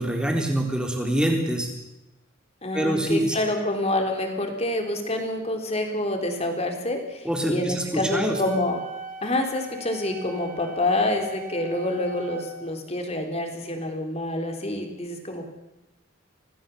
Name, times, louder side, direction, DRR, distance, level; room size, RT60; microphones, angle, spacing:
voice 1, 0.0-1.7 2.7-3.3 7.2-8.4, right 1 dB, 5° right, 2 dB, 3.7 m, -25 dB
voice 2, 2.6-8.8 9.2-15.4, left 1 dB, 30° left, 4 dB, 3.5 m, -27 dB
Wind instrument woodwind instrument, 8.3-12.5, right 2 dB, 40° right, 3.3 m, -40 dB
26.0 x 18.5 x 7.0 m, 0.99 s
head